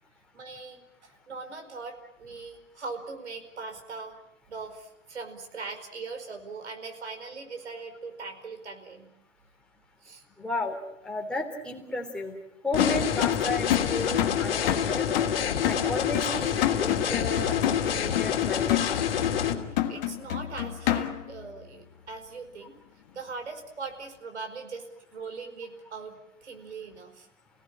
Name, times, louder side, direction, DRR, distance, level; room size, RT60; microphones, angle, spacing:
voice 1, 0.3-4.1 4.5-9.1 10.0-10.2 19.9-22.8 23.1-27.3, right 4 dB, 65° right, 5 dB, 5.0 m, -40 dB
voice 2, 10.4-10.8 11.0-12.4 12.6-15.3 15.6-18.8, left 2 dB, ahead, -1 dB, 3.7 m, -33 dB
sound 1, 12.7-19.5, left 8 dB, 50° left, 2.9 m, -27 dB
sound 2, 12.8-21.4, left 12 dB, 35° left, 1.7 m, -29 dB
29.5 x 18.0 x 8.9 m, 0.84 s
figure-of-eight pair, 120°, 36 cm